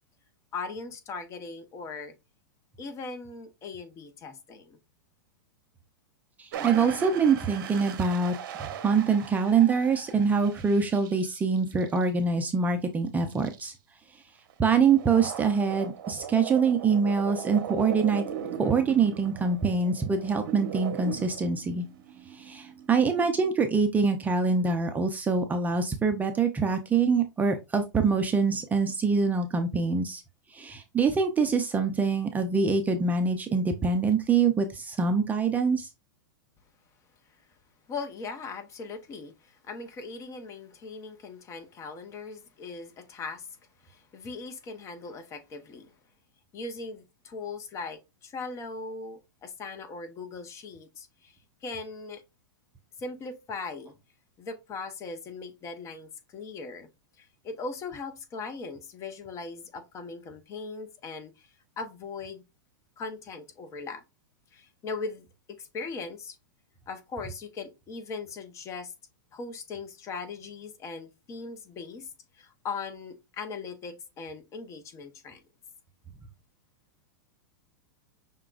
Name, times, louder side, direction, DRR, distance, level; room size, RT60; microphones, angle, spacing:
voice 1, 0.5-2.1 2.8-4.8 37.9-43.6 43.8-45.9 46.5-51.4 51.6-52.2 53.0-53.9 54.4-56.9 57.2-61.5 61.8-62.4 63.0-64.0 64.5-66.4 66.9-68.9 69.3-72.1 72.3-75.4, left 4 dB, 25° left, 0.9 m, -39 dB
voice 2, 6.4-8.3 8.6-13.7 14.6-18.2 18.6-21.8 22.3-30.2 30.5-35.9, right 5 dB, 15° right, 0.5 m, -25 dB
sound 1, 6.5-12.2 13.3-13.6 14.5-23.5, right 8 dB, 60° right, 1.0 m, -39 dB
5.7 x 3.7 x 2.4 m
hypercardioid pair, 130°, 12 cm